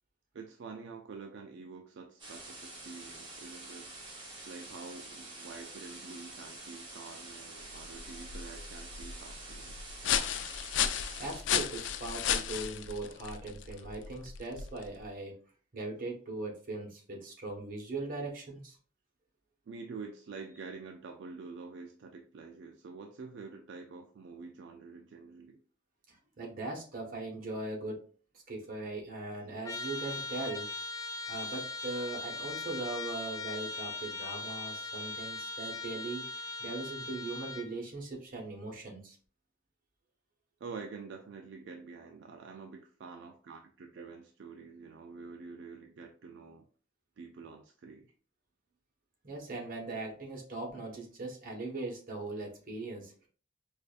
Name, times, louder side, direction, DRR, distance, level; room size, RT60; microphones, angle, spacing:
voice 1, 0.3-3.9 4.5-9.8 19.7-25.6 40.6-46.7 47.2-48.1, right 4 dB, 75° right, 0.4 m, -47 dB
sound 1, 2.2-11.4, right 2 dB, 25° right, 1.0 m, -47 dB
sound 2, 7.6-15.0, left 9 dB, 85° left, 0.4 m, -35 dB
voice 2, 11.2-15.4 15.7-18.8 26.1-28.0 28.5-30.7 31.0-39.2 49.2-53.3, right 2 dB, 50° right, 1.1 m, -40 dB
Trumpet, 29.6-37.7, left 3 dB, 20° left, 0.4 m, -40 dB
4.8 x 2.4 x 2.4 m
head